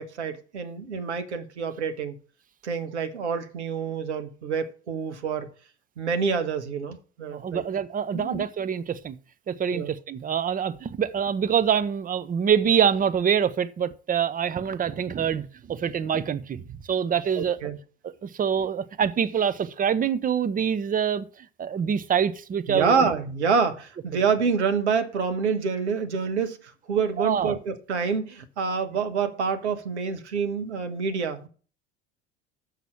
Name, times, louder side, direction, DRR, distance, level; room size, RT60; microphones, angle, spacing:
voice 1, 0.0-2.1 2.6-5.5 6.0-7.6 8.1-8.4 9.7-9.9 17.4-17.8 22.7-31.5, right 5 dB, 80° right, 1.4 m, -27 dB
voice 2, 7.3-9.2 9.5-17.6 18.0-21.3 21.6-23.1 27.2-27.6, right 8 dB, 25° right, 0.8 m, -25 dB
7.2 x 5.9 x 7.2 m
figure-of-eight pair, 70°, 34 cm